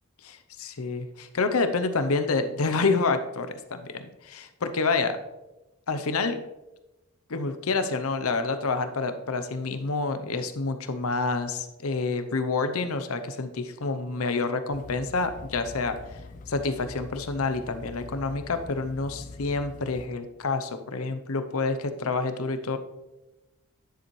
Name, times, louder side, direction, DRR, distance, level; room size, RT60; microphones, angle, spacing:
voice 1, 0.2-5.2 5.9-6.4 7.3-16.0 16.5-22.8, left 3 dB, 75° left, 9 dB, 0.7 m, -28 dB
sound 1, 14.7-20.1, left 3 dB, 35° left, 0.4 m, -44 dB
10.5 x 6.9 x 3.2 m, 1.0 s
head